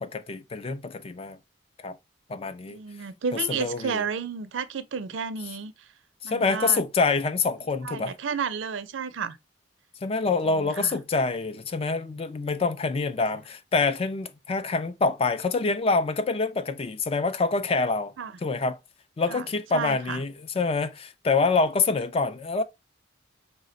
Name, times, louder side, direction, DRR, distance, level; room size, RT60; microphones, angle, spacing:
voice 1, 0.0-1.4 1.8-2.0 2.3-2.8 3.3-4.1 6.2-8.1 10.0-18.1 18.4-18.8 19.2-22.6, left 4 dB, 30° left, 0.4 m, -26 dB
voice 2, 2.7-5.7 6.2-6.8 7.8-9.4 10.4-10.9 18.2-18.3 19.3-19.4 19.7-20.2, right 6 dB, 80° right, 0.5 m, -32 dB
4.7 x 2.1 x 3.8 m
head